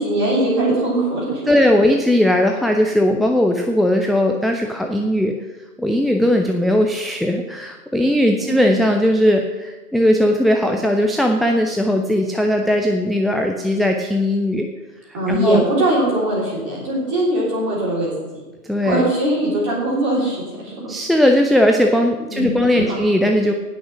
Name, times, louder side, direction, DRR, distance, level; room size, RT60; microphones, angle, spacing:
voice 1, 0.0-1.4 8.4-8.7 15.1-18.4 18.8-20.9 22.3-23.0, right 1 dB, 15° right, -5 dB, 3.2 m, -21 dB
voice 2, 1.5-5.3 5.8-14.7 15.1-15.6 18.7-19.0 20.9-23.5, left 1 dB, ahead, 3 dB, 0.3 m, -18 dB
18.0 x 6.2 x 6.0 m, 1.2 s
hypercardioid pair, 175°, 49 cm